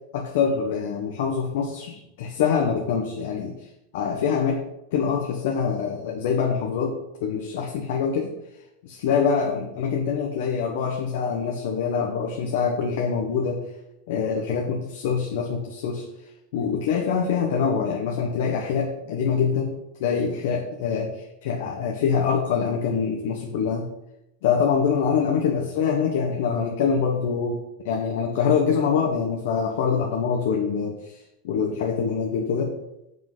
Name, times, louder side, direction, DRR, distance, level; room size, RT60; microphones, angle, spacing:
voice 1, 0.1-3.7 3.9-4.6 4.9-8.3 8.8-13.6 14.1-16.0 16.5-19.7 20.0-23.9 24.4-27.6 27.8-32.7, left 6 dB, 65° left, 1 dB, 1.2 m, -25 dB
7.8 x 5.8 x 5.6 m, 0.86 s
supercardioid pair, 165°, 0 cm